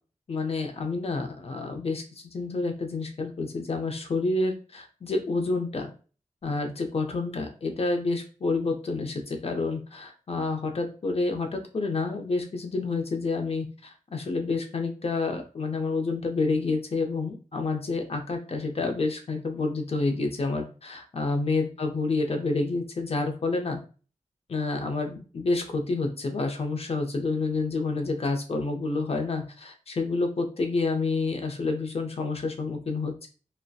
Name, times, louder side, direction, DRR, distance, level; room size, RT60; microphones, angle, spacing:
voice 1, 0.3-2.0 2.3-5.9 6.4-23.8 24.5-33.3, left 3 dB, 50° left, 4 dB, 0.5 m, -29 dB
2.6 x 2.1 x 2.3 m, 0.37 s
wide cardioid pair, 85°, 13 cm